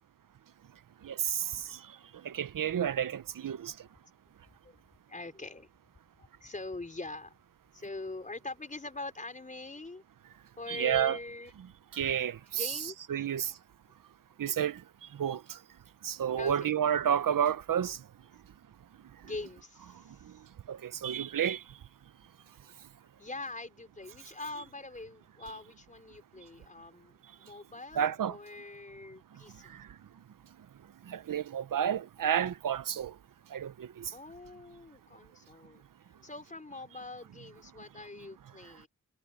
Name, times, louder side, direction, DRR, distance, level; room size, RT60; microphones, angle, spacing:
voice 1, 1.0-1.7 2.2-3.7 10.7-11.2 11.9-12.4 13.1-13.5 14.4-14.8 15.2-15.4 16.0-18.0 20.7-21.6 28.0-28.4 31.1-33.1 33.5-34.0, right 9 dB, 80° right, 0.8 m, -30 dB
voice 2, 5.1-5.7 6.2-7.3 7.7-10.0 10.6-11.5 12.5-13.3 16.4-16.7 19.2-20.3 23.2-29.8 34.1-35.8 36.2-38.9, left 2 dB, 25° left, 4.9 m, -43 dB
wide cardioid pair, 160°, 32 cm